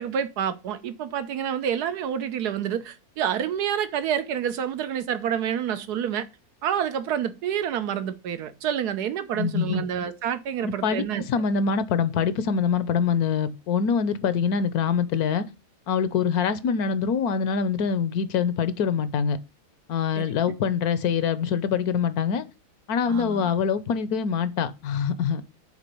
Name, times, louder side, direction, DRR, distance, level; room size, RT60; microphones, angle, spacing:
voice 1, 0.0-6.3 6.6-11.2 20.2-20.5 23.1-23.5, right 9 dB, 85° right, 1.4 m, -28 dB
voice 2, 9.3-9.9 10.6-15.4 15.9-19.4 19.9-22.5 22.9-25.4, left 6 dB, 75° left, 1.2 m, -24 dB
8.1 x 3.7 x 6.8 m
omnidirectional pair, 1.6 m